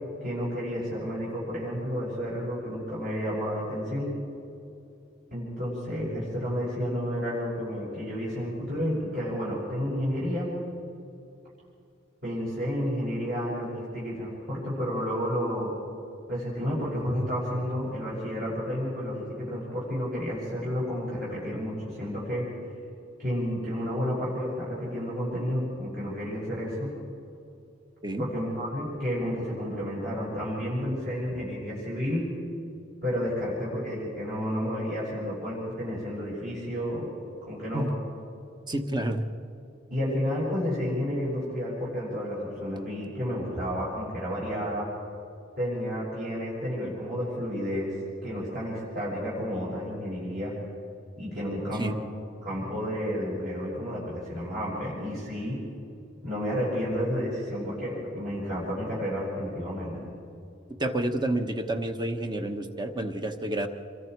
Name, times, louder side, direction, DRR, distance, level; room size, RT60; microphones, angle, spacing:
voice 1, 0.2-4.1 5.3-10.5 12.2-15.7 16.3-22.5 23.2-26.9 28.2-32.3 33.0-37.1 37.4-37.8 39.9-44.9 45.6-48.0 48.2-50.5 51.2-51.9 52.4-55.6 56.2-60.0, equal, 50° right, -8 dB, 6.5 m, -31 dB
voice 2, 38.7-39.2 51.8-51.9 60.8-63.7, right 1 dB, 25° right, 6 dB, 1.2 m, -29 dB
27.0 x 23.0 x 4.7 m, 2.6 s
head